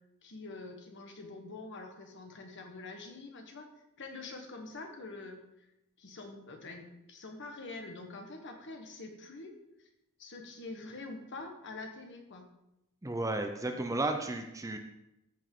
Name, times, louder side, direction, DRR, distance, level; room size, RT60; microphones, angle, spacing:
voice 1, 0.2-3.7 4.0-5.7 6.0-9.9 10.2-12.5, left 3 dB, 55° left, 3 dB, 1.4 m, -45 dB
voice 2, 13.0-14.8, right 2 dB, 15° right, 5 dB, 0.6 m, -33 dB
14.0 x 5.4 x 3.8 m, 0.89 s
head